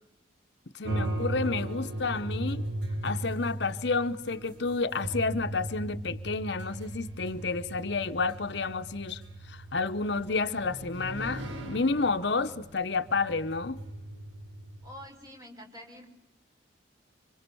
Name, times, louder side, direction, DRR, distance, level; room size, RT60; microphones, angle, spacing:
voice 1, 0.7-2.6 3.0-9.2 9.5-13.8, left 3 dB, 60° left, 0.9 m, -30 dB
sound 1, 0.8-15.0, right 1 dB, 70° right, 5.4 m, -38 dB
voice 2, 14.8-16.1, equal, 20° right, 5.5 m, -47 dB
26.5 x 25.5 x 7.0 m
head